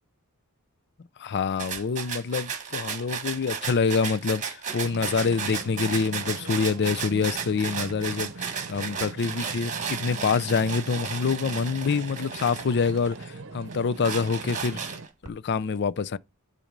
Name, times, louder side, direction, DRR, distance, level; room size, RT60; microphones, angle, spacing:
voice 1, 1.2-14.8 15.2-16.2, left 5 dB, 50° left, 0.5 m, -26 dB
sound 1, 1.6-13.3 13.7-15.3, right 6 dB, 35° right, 1.4 m, -34 dB
sound 2, 4.8-15.1, right 3 dB, 60° right, 0.8 m, -41 dB
10.0 x 4.1 x 5.2 m
head